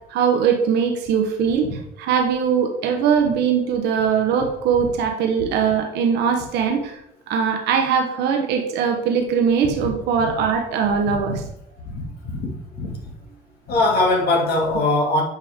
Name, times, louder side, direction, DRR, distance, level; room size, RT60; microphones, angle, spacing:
voice 1, 0.1-1.7 2.0-7.0 7.3-11.4, right 7 dB, 80° right, 3 dB, 1.3 m, -21 dB
voice 2, 11.9-12.9 13.7-15.2, left 2 dB, 65° left, 0 dB, 2.5 m, -21 dB
8.9 x 5.5 x 3.6 m, 0.79 s
cardioid pair, 110°, 17 cm